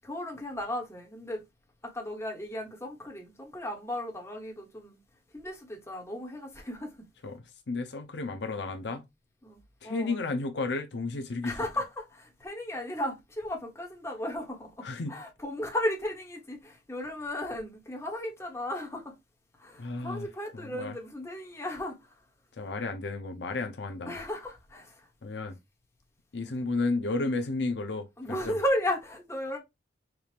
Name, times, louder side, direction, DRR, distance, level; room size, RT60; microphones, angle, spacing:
voice 1, 0.0-1.4 1.8-5.0 5.3-7.1 9.4-10.2 11.4-19.1 19.6-22.2 24.1-25.1 28.2-29.6, left 1 dB, 15° left, 1.2 m, -35 dB
voice 2, 7.2-9.0 9.8-11.6 14.8-15.2 19.8-20.3 20.6-20.9 22.6-24.2 25.2-25.6 26.3-28.5, left 3 dB, 70° left, 0.6 m, -32 dB
4.6 x 2.4 x 3.3 m
head